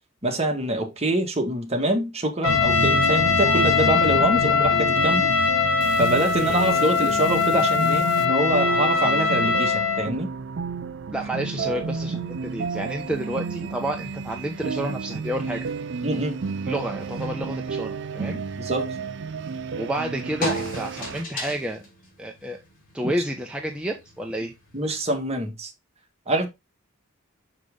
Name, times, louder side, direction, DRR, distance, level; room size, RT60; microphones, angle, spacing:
voice 1, 0.2-5.3 6.0-10.3 12.1-12.2 16.0-16.3 18.6-18.9 24.7-25.7 26.3-26.5, right 1 dB, 30° right, 1.7 m, -25 dB
Trumpet, 2.4-10.1, left 5 dB, 85° left, 1.6 m, -21 dB
sound 1, 2.4-21.2, right 4 dB, 65° right, 0.5 m, -30 dB
voice 2, 11.1-15.7 16.6-18.4 19.8-21.9 22.2-22.6 22.9-24.5, right 1 dB, 5° right, 0.9 m, -30 dB
sound 2, 11.6-25.2, equal, 45° left, 3.6 m, -40 dB
6.4 x 5.9 x 3.6 m
head